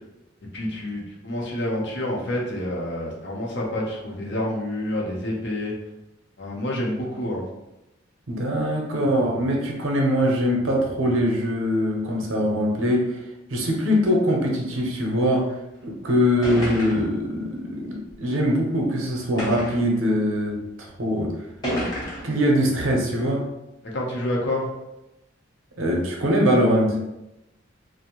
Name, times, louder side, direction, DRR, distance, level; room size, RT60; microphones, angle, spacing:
voice 1, 0.5-5.7 6.4-7.4 23.8-24.7, left 1 dB, 60° left, -2 dB, 0.7 m, -28 dB
voice 2, 8.3-13.2 13.5-15.5 15.8-20.6 21.0-21.3 22.2-23.5 25.8-27.0, equal, 80° right, -1 dB, 0.7 m, -22 dB
sound 1, 15.8-15.9 16.4-17.2 18.1-18.2 19.4-19.9 20.8-20.9 21.6-22.4, equal, 20° left, 0.8 m, -29 dB
2.5 x 2.0 x 2.9 m, 0.93 s
head